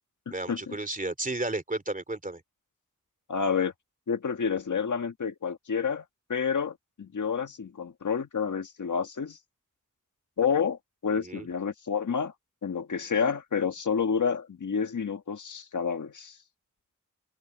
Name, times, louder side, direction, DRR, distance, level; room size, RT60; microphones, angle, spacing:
voice 1, 0.3-2.4 11.1-11.5, right 2 dB, 25° right, 3.0 m, -33 dB
voice 2, 3.3-3.7 4.1-6.0 6.3-9.4 10.4-12.3 12.6-16.3, left 6 dB, 70° left, 1.6 m, -29 dB
wide cardioid pair, 105°, 31 cm